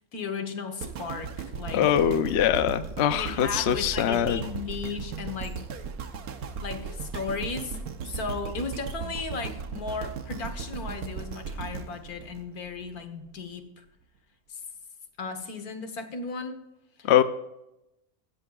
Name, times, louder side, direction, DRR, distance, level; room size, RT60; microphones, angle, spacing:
voice 1, 0.1-1.8 3.2-5.7 6.6-7.8 8.0-13.8 14.5-14.6 15.2-16.6 17.0-17.1, left 4 dB, 85° left, 7 dB, 1.9 m, -35 dB
sound 1, 0.8-13.0 13.5-13.6, right 5 dB, 80° right, 1.4 m, -37 dB
voice 2, 1.7-4.4 17.0-17.2, left 10 dB, 60° left, 11 dB, 0.8 m, -23 dB
16.0 x 13.5 x 2.4 m, 0.87 s
omnidirectional pair, 1.5 m